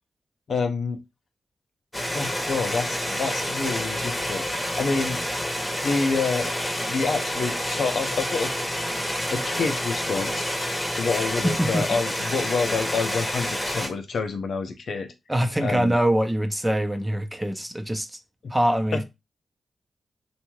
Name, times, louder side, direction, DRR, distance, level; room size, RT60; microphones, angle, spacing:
voice 1, 0.5-1.0 2.1-4.4 4.8-5.2 5.8-6.5 6.9-8.5 9.3-10.5 11.0-15.1 15.6-16.0 18.9-19.0, left 4 dB, 70° left, 0.5 m, -27 dB
Pool Pump, 1.9-13.9, equal, 15° left, 0.9 m, -28 dB
voice 2, 11.4-12.0 15.3-18.2 18.5-19.0, right 1 dB, 15° right, 0.6 m, -24 dB
2.6 x 2.2 x 3.1 m
supercardioid pair, 45°, 0 cm